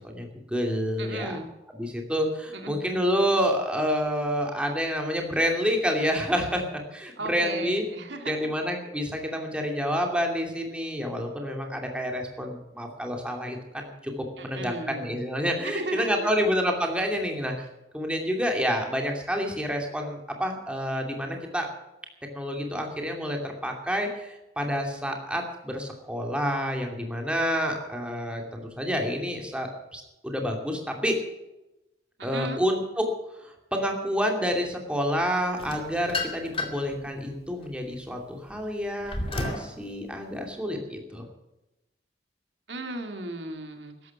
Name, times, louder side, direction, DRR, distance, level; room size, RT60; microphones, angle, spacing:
voice 1, 0.0-1.4 1.7-6.6 6.9-7.8 8.3-17.5 17.9-21.7 22.3-31.2 32.2-33.0 33.4-41.2, equal, 5° right, 2 dB, 2.7 m, -28 dB
voice 2, 1.0-1.5 2.5-3.0 7.2-8.5 14.4-15.2 15.6-16.4 32.2-32.6 42.7-44.1, right 2 dB, 90° right, 5 dB, 2.3 m, -36 dB
sound 1, 35.6-36.9 37.5-39.7, left 2 dB, 30° left, 2.4 m, -32 dB
14.5 x 12.0 x 6.0 m, 0.96 s
head